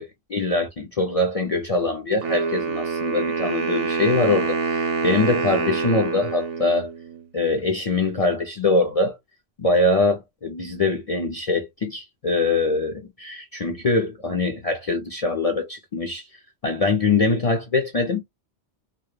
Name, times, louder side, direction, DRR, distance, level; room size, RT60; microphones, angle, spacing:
voice 1, 0.0-6.9 7.3-9.2 9.6-18.2, left 3 dB, 55° left, 0.4 m, -23 dB
Wind instrument woodwind instrument, 2.2-7.2, right 4 dB, 85° right, 0.9 m, -26 dB
2.2 x 2.0 x 3.1 m
omnidirectional pair, 1.2 m